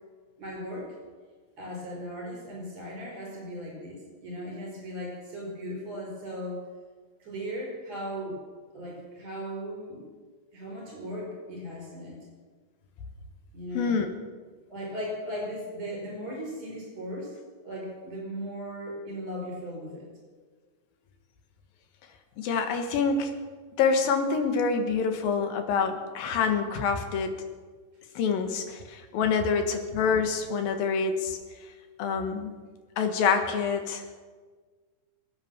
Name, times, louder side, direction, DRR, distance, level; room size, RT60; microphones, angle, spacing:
voice 1, 0.4-0.9 1.6-6.6 7.2-8.4 8.7-10.1 10.5-12.2 13.5-14.0 14.7-17.4 17.6-20.1, equal, 45° right, -2 dB, 6.4 m, -37 dB
voice 2, 13.7-14.1 22.4-23.3 23.8-27.3 28.2-31.4 32.0-32.5 33.0-34.2, left 5 dB, 75° left, 6 dB, 3.2 m, -26 dB
22.0 x 9.0 x 7.1 m, 1.5 s
omnidirectional pair, 4.2 m